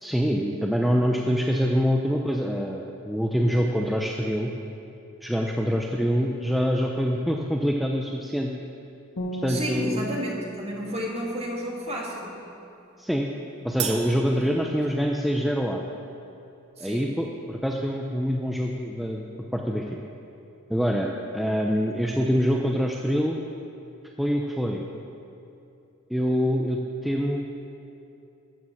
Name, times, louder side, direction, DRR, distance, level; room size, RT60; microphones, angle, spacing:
voice 1, 0.0-4.5 5.2-8.5 9.4-10.0 13.0-13.3 13.6-15.8 16.8-19.9 20.7-23.4 24.2-24.8 26.1-27.4, equal, ahead, 0 dB, 0.5 m, -25 dB
sound 1, 9.2-12.4, right 1 dB, 75° left, 1.6 m, -37 dB
voice 2, 9.5-12.4 14.2-14.6 16.8-17.1, equal, 30° right, -2 dB, 1.9 m, -32 dB
Crash cymbal, 13.8-15.5, right 8 dB, 50° right, 0.8 m, -35 dB
13.0 x 6.7 x 7.2 m, 2.8 s
head